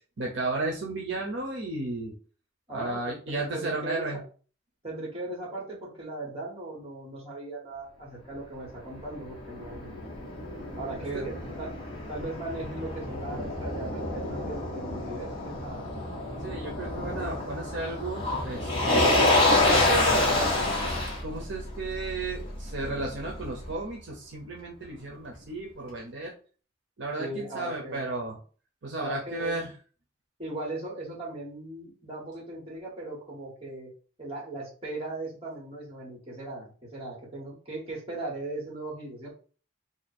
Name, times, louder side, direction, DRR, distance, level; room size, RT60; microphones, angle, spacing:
voice 1, 0.2-2.2 2.7-4.2 11.1-11.2 16.4-19.3 19.6-20.9 21.2-26.3 27.0-28.4 28.8-29.7, right 2 dB, 65° right, -1 dB, 0.7 m, -33 dB
voice 2, 2.7-4.2 4.8-10.0 10.8-11.7 12.1-15.9 27.2-28.0 29.0-29.6 30.4-33.9 34.2-39.3, right 2 dB, 30° right, -3 dB, 1.5 m, -38 dB
Motor vehicle (road), 8.7-23.7, left 2 dB, 25° left, 1.0 m, -28 dB
2.8 x 2.7 x 4.2 m, 0.40 s
head